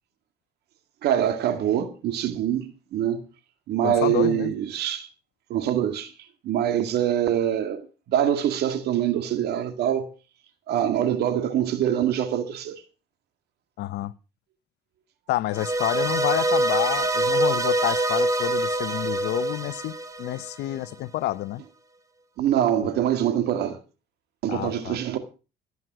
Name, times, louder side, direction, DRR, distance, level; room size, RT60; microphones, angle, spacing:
voice 1, 1.0-3.2 3.7-5.1 5.5-6.1 6.4-10.1 10.7-12.8 22.4-23.8 24.4-25.2, right 10 dB, 75° right, 2.0 m, -24 dB
voice 2, 3.8-4.5 13.8-14.1 15.3-21.6 22.8-22.9 24.5-25.0, left 16 dB, 80° left, 0.8 m, -29 dB
sound 1, 15.5-20.8, right 2 dB, 20° right, 2.1 m, -25 dB
16.0 x 9.5 x 6.0 m
cardioid pair, 110°, 17 cm